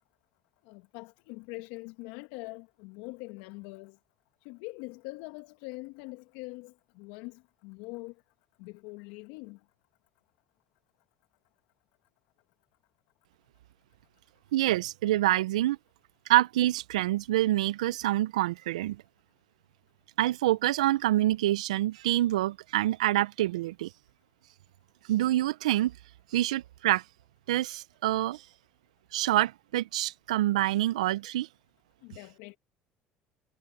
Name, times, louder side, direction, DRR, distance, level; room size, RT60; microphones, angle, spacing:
voice 1, 0.7-4.0 4.4-8.1 8.6-9.6 32.0-32.6, left 26 dB, 70° left, 1.9 m, -43 dB
voice 2, 14.5-15.8 16.3-19.0 20.2-23.9 25.1-26.0 26.3-27.0 27.5-28.4 29.1-31.5, right 15 dB, 80° right, 0.9 m, -26 dB
hypercardioid pair, 65°, 4 cm